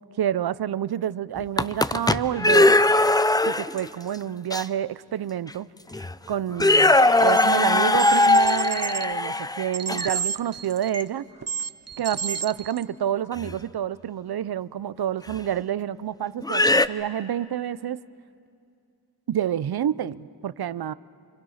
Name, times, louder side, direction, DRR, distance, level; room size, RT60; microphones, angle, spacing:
voice 1, 0.2-2.7 3.4-5.7 6.3-11.2 12.0-18.0 19.3-20.9, right 10 dB, 75° right, 18 dB, 0.5 m, -28 dB
sound 1, 1.4-3.9 4.5-4.6 5.5-5.6 5.9-6.1 6.5-10.2 13.4-13.5 15.3-15.4 16.4-16.9, left 2 dB, 10° left, 0.5 m, -20 dB
sound 2, 7.3-7.4 7.9-9.0 9.7-11.1 11.4-12.8, right 6 dB, 40° right, 0.7 m, -30 dB
29.0 x 25.5 x 5.7 m, 2.5 s
wide cardioid pair, 70°, 38 cm